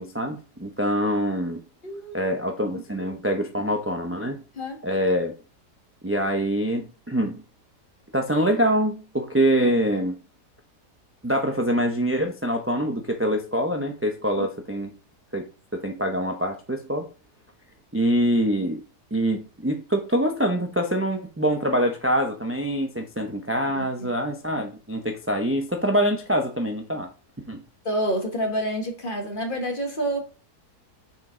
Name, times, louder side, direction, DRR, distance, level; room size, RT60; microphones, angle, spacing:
voice 1, 0.0-1.6 2.1-4.4 4.8-5.3 6.0-7.4 8.1-10.1 11.2-14.9 15.3-15.5 15.7-17.1 17.9-18.8 19.1-27.1 27.5-27.6, equal, 15° right, 0.5 m, -25 dB
voice 2, 1.8-2.8 4.5-4.8 14.3-14.4 23.7-24.1 27.8-30.2, right 1 dB, 30° left, 1.7 m, -29 dB
6.5 x 5.4 x 3.8 m
omnidirectional pair, 1.7 m